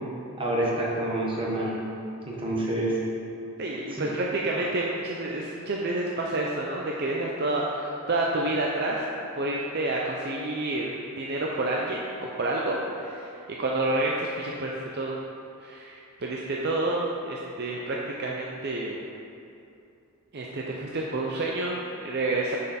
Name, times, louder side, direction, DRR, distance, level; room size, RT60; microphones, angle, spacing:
voice 1, 0.4-1.8 2.2-3.0 3.9-4.1, right 1 dB, 25° right, -4 dB, 1.3 m, -27 dB
voice 2, 3.6-9.1 9.4-13.3 13.6-15.2 15.6-19.0 20.3-22.6, right 2 dB, 50° right, -2 dB, 0.5 m, -29 dB
6.9 x 6.6 x 4.2 m, 2.7 s
head